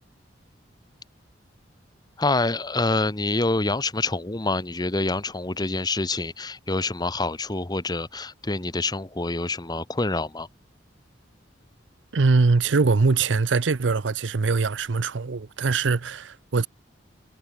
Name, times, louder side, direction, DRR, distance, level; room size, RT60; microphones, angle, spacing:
voice 1, 2.2-10.5, left 2 dB, 25° left, 1.1 m, -26 dB
voice 2, 12.1-16.7, right 4 dB, 85° right, 0.7 m, -22 dB
head